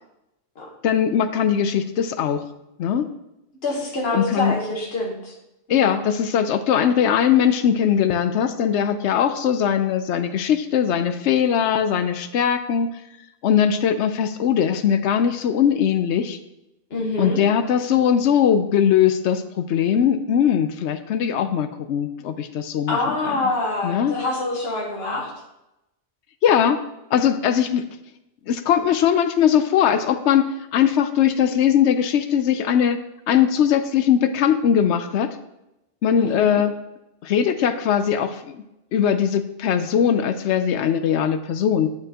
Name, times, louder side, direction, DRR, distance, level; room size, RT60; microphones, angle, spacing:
voice 1, 0.8-2.4 2.8-3.1 4.1-4.5 5.7-12.9 13.4-16.4 17.2-23.4 23.8-24.2 26.4-26.8 27.1-27.8 28.5-33.0 33.3-35.3 36.0-36.7 37.2-38.6 38.9-41.9, left 8 dB, 75° left, 10 dB, 0.9 m, -20 dB
voice 2, 3.6-5.3 5.7-6.0 16.9-17.4 22.9-25.3 36.2-36.6, left 2 dB, 60° left, -1 dB, 1.6 m, -26 dB
9.9 x 5.8 x 2.9 m, 0.91 s
omnidirectional pair, 1.2 m